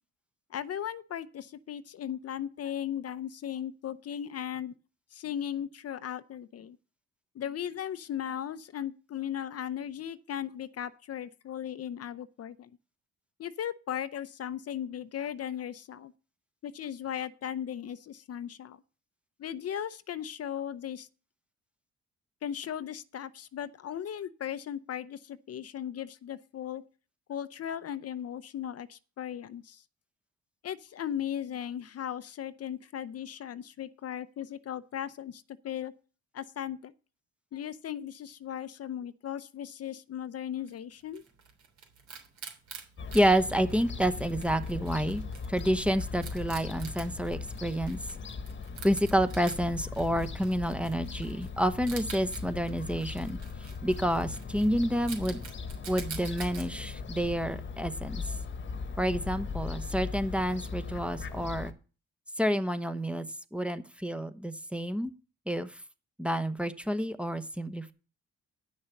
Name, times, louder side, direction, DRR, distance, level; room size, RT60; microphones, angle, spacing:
voice 1, 0.5-4.7 5.1-6.8 7.3-12.7 13.4-16.1 16.6-18.8 19.4-21.1 22.4-26.8 27.3-29.8 30.6-35.9 36.3-36.9 37.5-41.2, left 10 dB, 55° left, 0.7 m, -37 dB
Wild animals, 40.7-56.7, right 6 dB, 65° right, 3.3 m, -48 dB
Fowl / Gull seagull, 43.0-61.7, left 4 dB, 40° left, 1.2 m, -39 dB
voice 2, 43.1-48.0 48.8-53.4 53.8-55.4 55.9-58.2 59.0-61.7 62.4-65.1 65.5-65.7 66.2-67.9, equal, 5° right, 1.0 m, -29 dB
9.9 x 6.5 x 7.1 m
cardioid pair, 90°, 30 cm